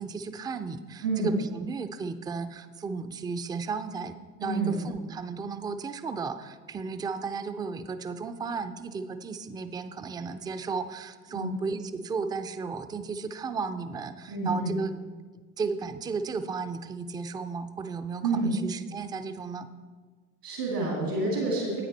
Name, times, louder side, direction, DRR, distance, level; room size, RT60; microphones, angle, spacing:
voice 1, 0.0-4.1 4.4-14.9 15.6-19.7, right 4 dB, 10° right, 10 dB, 0.3 m, -34 dB
voice 2, 1.0-1.4 4.4-4.8 11.3-11.6 14.3-14.8 18.2-18.5 20.4-21.8, right 3 dB, 85° right, -3 dB, 2.4 m, -28 dB
9.6 x 8.9 x 4.0 m, 1.5 s
figure-of-eight pair, 60°, 46 cm